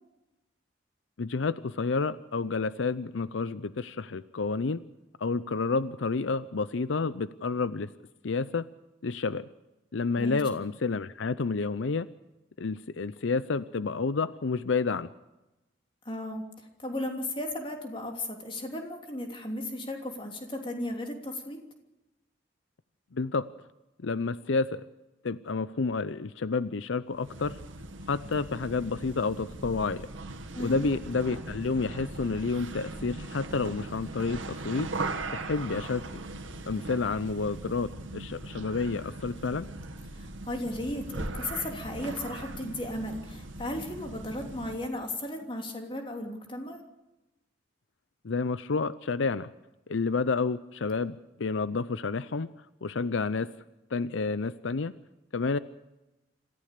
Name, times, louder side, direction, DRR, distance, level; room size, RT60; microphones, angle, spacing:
voice 1, 1.2-4.8 5.2-7.9 8.2-8.7 9.0-9.5 9.9-12.1 12.6-15.1 23.1-23.4 24.0-24.8 25.2-27.6 28.1-30.1 30.6-34.9 35.3-36.2 36.7-39.7 48.2-49.5 49.9-52.5 52.8-53.5 53.9-54.9 55.3-55.6, left 4 dB, 80° left, 15 dB, 0.6 m, -30 dB
voice 2, 16.0-16.4 16.8-21.6 30.5-30.9 40.1-46.8, left 1 dB, 25° left, 3 dB, 3.1 m, -35 dB
sound 1, 27.1-44.9, right 2 dB, 90° right, 2.0 m, -39 dB
26.5 x 15.0 x 6.7 m, 0.97 s
head